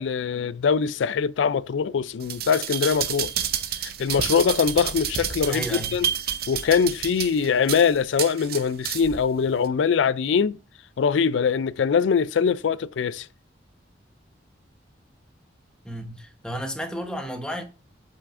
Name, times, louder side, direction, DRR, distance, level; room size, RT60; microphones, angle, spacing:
voice 1, 0.0-3.3 3.8-6.1 6.5-10.6 11.0-13.3, left 6 dB, 85° left, 0.4 m, -23 dB
sound 1, 2.2-9.2 9.6-9.7, right 9 dB, 55° right, 0.7 m, -29 dB
voice 2, 5.5-6.0 15.8-17.6, equal, 5° left, 1.0 m, -32 dB
8.1 x 5.6 x 2.5 m
head